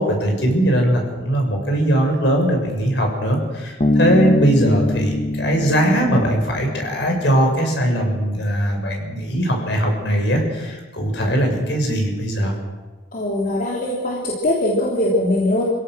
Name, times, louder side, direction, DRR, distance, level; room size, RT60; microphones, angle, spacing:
voice 1, 0.0-12.5, right 1 dB, 70° left, 2 dB, 6.2 m, -20 dB
Bass guitar, 3.8-7.4, left 1 dB, 35° left, 1.3 m, -23 dB
voice 2, 13.1-15.6, left 1 dB, 50° left, -3 dB, 3.4 m, -21 dB
27.5 x 16.5 x 6.4 m, 1.3 s
head